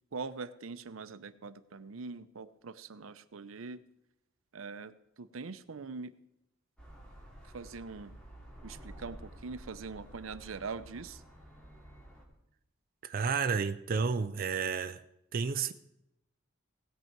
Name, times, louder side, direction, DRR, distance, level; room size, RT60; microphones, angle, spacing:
voice 1, 0.1-3.8 4.5-6.1 7.4-8.1 8.6-11.2, right 4 dB, 85° right, 0.6 m, -43 dB
sound 1, 6.8-12.2, right 1 dB, 5° left, 2.6 m, -51 dB
voice 2, 13.0-15.0 15.3-15.7, right 5 dB, 45° right, 0.5 m, -31 dB
17.0 x 8.2 x 4.5 m
head